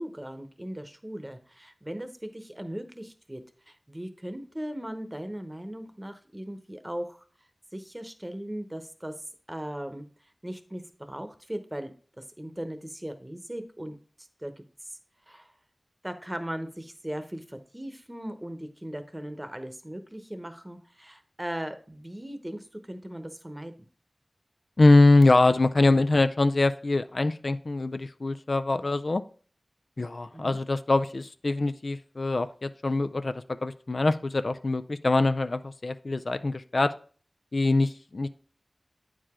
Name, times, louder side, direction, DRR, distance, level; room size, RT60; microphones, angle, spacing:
voice 1, 0.0-7.2 7.7-9.1 9.5-10.1 10.4-11.9 12.2-14.0 14.4-14.6 15.3-15.5 16.0-23.7 30.3-30.6, equal, 20° right, 8 dB, 0.9 m, -38 dB
voice 2, 24.8-29.2 30.0-36.9 37.5-38.3, left 2 dB, 65° left, 10 dB, 0.3 m, -23 dB
8.8 x 4.8 x 3.6 m, 0.42 s
wide cardioid pair, 50°, 0 cm